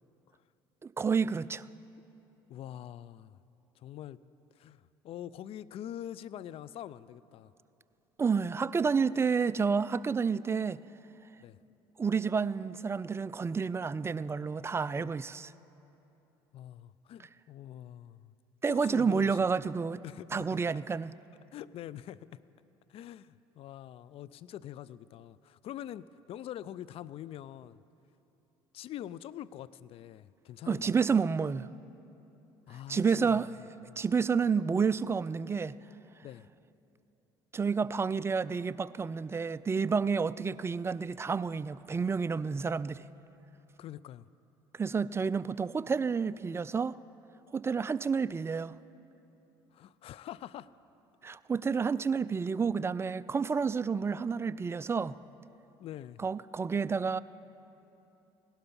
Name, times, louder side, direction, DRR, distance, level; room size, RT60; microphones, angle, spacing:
voice 1, 0.8-1.7 8.2-10.8 12.0-15.5 18.6-20.0 20.3-21.1 30.7-31.7 32.9-33.5 34.0-35.8 37.5-43.0 44.8-46.9 47.5-48.8 51.2-55.2 56.2-57.2, right 5 dB, 20° right, 0.3 m, -30 dB
voice 2, 2.5-3.4 3.8-4.2 4.6-7.5 11.4-11.6 16.5-18.3 18.7-19.4 20.0-20.6 21.5-22.4 22.9-27.8 28.7-31.0 32.7-33.4 33.9-34.0 36.2-36.5 43.8-44.3 49.7-50.7 55.8-56.3, left 11 dB, 55° left, 0.4 m, -44 dB
17.0 x 12.0 x 5.4 m
hypercardioid pair, 70°, 12 cm